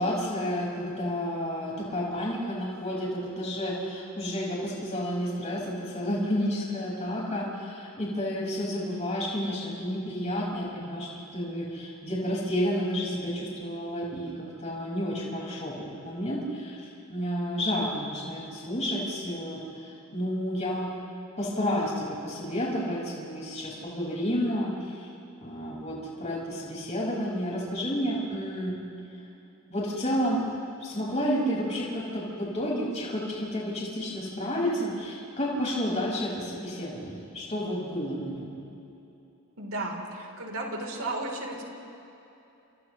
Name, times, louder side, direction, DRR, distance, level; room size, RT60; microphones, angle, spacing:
voice 1, 0.0-14.3 14.6-20.9 21.4-25.1 25.4-28.8 29.7-30.4 30.8-38.5, equal, 30° left, -4 dB, 5.4 m, -31 dB
voice 2, 39.6-41.6, right 2 dB, 70° right, 1 dB, 3.6 m, -34 dB
29.5 x 28.5 x 3.2 m, 2.9 s
head